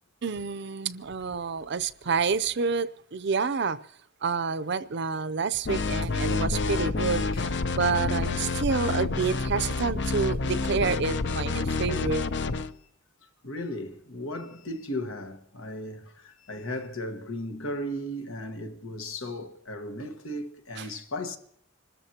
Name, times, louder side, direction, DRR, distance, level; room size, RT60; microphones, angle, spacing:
voice 1, 0.2-3.8 4.2-7.2 7.7-12.3 20.8-20.9, right 5 dB, 55° right, 0.6 m, -28 dB
sound 1, 5.7-12.7, left 3 dB, 55° left, 0.6 m, -28 dB
voice 2, 13.4-21.4, left 1 dB, 85° left, 1.5 m, -36 dB
26.5 x 13.5 x 2.9 m
head